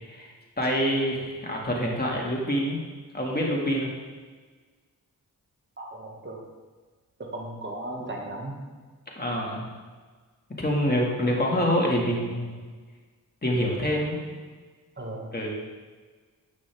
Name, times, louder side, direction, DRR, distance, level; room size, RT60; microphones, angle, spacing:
voice 1, 0.6-2.8 3.1-4.0 9.2-9.7 10.6-12.6 13.4-14.2 15.3-15.5, equal, 25° left, -2 dB, 2.1 m, -26 dB
voice 2, 5.8-6.4 7.2-8.6 15.0-15.3, right 1 dB, 30° right, -1 dB, 1.9 m, -36 dB
9.5 x 8.6 x 3.5 m, 1.4 s
cardioid pair, 65°, 36 cm